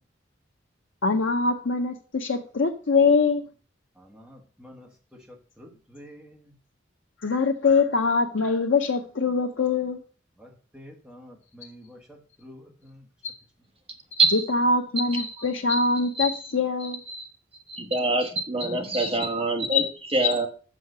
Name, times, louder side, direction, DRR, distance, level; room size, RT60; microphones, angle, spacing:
voice 1, 1.0-3.4 7.2-10.0 14.1-17.3 19.7-19.9 20.2-20.3, left 4 dB, 75° left, 0.7 m, -23 dB
voice 2, 4.0-4.9 5.6-6.5 10.4-13.0, equal, 5° right, 1.4 m, -48 dB
voice 3, 17.7-19.8 20.1-20.5, right 2 dB, 30° right, 1.2 m, -24 dB
6.6 x 6.3 x 6.6 m
head